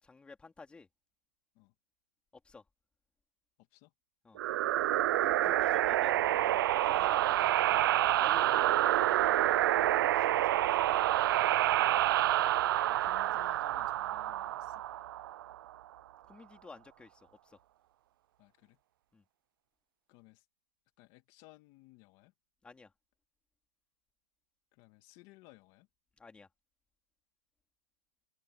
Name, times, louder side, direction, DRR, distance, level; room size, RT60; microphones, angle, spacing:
voice 1, 0.0-0.9 2.4-2.6 4.2-4.4 5.2-8.8 9.2-10.8 16.3-17.6 19.1-19.2 22.6-22.9 26.2-26.5, left 4 dB, 5° left, 2.9 m, -54 dB
sound 1, 4.4-15.7, right 13 dB, 35° right, 0.6 m, -28 dB
voice 2, 11.4-12.0 12.8-14.8 18.4-18.8 20.1-20.5 21.0-22.3 24.7-25.9, left 21 dB, 25° left, 2.5 m, -59 dB
hypercardioid pair, 160°, 19 cm